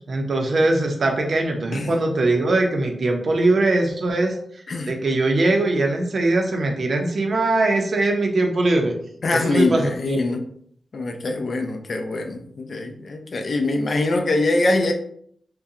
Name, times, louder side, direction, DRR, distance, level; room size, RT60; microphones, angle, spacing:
voice 1, 0.0-4.4 4.9-8.9 9.3-10.2, right 2 dB, 60° right, 3 dB, 0.6 m, -21 dB
voice 2, 9.2-10.4 10.9-14.9, left 2 dB, 55° left, 5 dB, 0.4 m, -23 dB
3.8 x 2.2 x 2.7 m, 0.64 s
wide cardioid pair, 100°, 0 cm